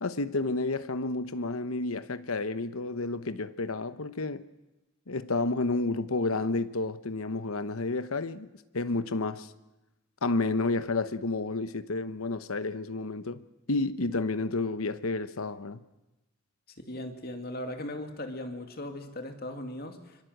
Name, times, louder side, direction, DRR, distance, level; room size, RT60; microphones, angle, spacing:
voice 1, 0.0-4.4 5.1-8.5 8.7-9.5 10.2-13.4 13.7-15.8, left 3 dB, 85° left, 1.1 m, -30 dB
voice 2, 16.8-20.2, left 1 dB, 45° left, 2.5 m, -38 dB
25.5 x 24.0 x 8.0 m
head